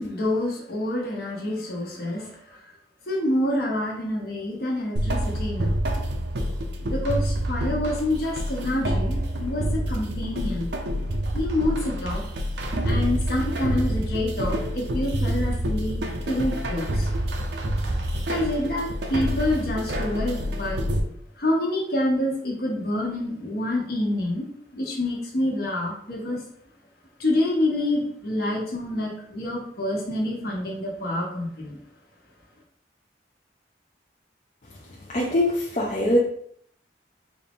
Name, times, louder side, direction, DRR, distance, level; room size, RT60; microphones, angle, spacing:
voice 1, 0.0-2.3 3.1-5.7 6.8-10.7 11.3-12.2 12.8-17.1 18.3-20.8 21.4-24.5 24.7-26.4 27.2-31.8, left 1 dB, 55° left, -2 dB, 1.1 m, -27 dB
sound 1, 5.0-21.0, equal, 70° right, 0.6 m, -27 dB
voice 2, 35.1-36.2, left 1 dB, 40° left, -4 dB, 0.6 m, -22 dB
4.3 x 2.5 x 3.5 m, 0.66 s
head